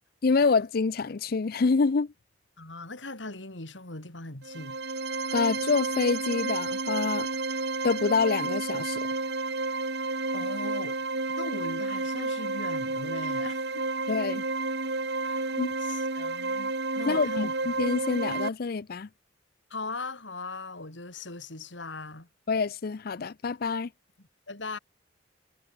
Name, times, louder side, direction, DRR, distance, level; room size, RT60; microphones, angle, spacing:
voice 1, 0.2-2.1 5.3-7.3 7.8-9.0 14.1-14.4 15.5-15.7 17.1-19.1 22.5-23.9, left 4 dB, 50° left, 0.5 m, -26 dB
voice 2, 2.6-4.8 10.3-10.9 11.4-13.9 15.2-17.5 19.7-22.3 24.2-24.8, left 3 dB, 75° left, 4.4 m, -39 dB
sound 1, 4.4-18.5, right 3 dB, 60° right, 2.4 m, -31 dB
head